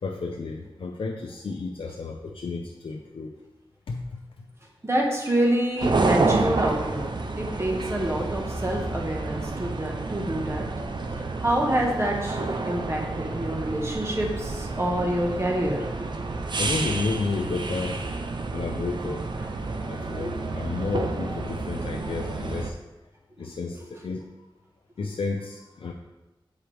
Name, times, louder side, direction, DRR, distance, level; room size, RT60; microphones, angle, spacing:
voice 1, 0.0-3.4 3.9-4.5 16.6-18.2 18.5-19.3 19.7-22.8 23.4-24.4 25.0-25.9, left 4 dB, 80° left, 1 dB, 0.6 m, -32 dB
voice 2, 4.8-7.0 7.4-10.7 11.4-15.8 16.1-16.2 20.0-20.3 23.4-23.5, right 1 dB, 30° right, -1 dB, 1.5 m, -27 dB
sound 1, 5.8-22.7, right 3 dB, 55° right, 0.6 m, -29 dB
7.5 x 4.8 x 3.4 m, 1.0 s
wide cardioid pair, 70°, 9 cm